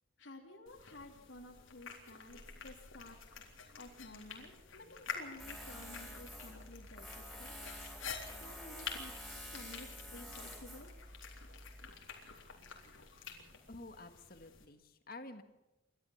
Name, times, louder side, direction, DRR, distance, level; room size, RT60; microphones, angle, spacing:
voice 1, 0.2-3.2 3.8-7.6 8.1-9.1 9.5-10.9, left 2 dB, 70° left, 1 dB, 3.1 m, -53 dB
sound 1, 0.7-14.7, left 6 dB, 90° left, 3.8 m, -49 dB
Tools, 5.4-11.9, equal, ahead, 4.4 m, -49 dB
voice 2, 13.7-15.4, left 2 dB, 50° left, 8 dB, 1.7 m, -50 dB
28.5 x 13.0 x 7.2 m, 1.0 s
head